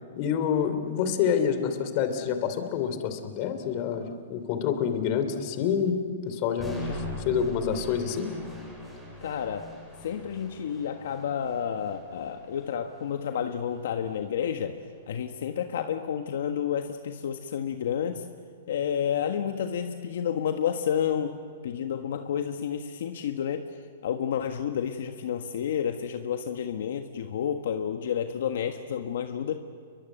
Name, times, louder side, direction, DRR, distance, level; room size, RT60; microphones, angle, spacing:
voice 1, 0.2-6.0 6.3-8.3, left 7 dB, 35° left, 9 dB, 2.9 m, -27 dB
sound 1, 6.6-14.6, equal, ahead, 6.5 m, -42 dB
voice 2, 9.2-9.8 10.0-14.8 15.1-18.3 18.7-29.6, left 8 dB, 65° left, 6 dB, 1.5 m, -30 dB
29.5 x 22.5 x 8.0 m, 2.1 s
hypercardioid pair, 155°, 0 cm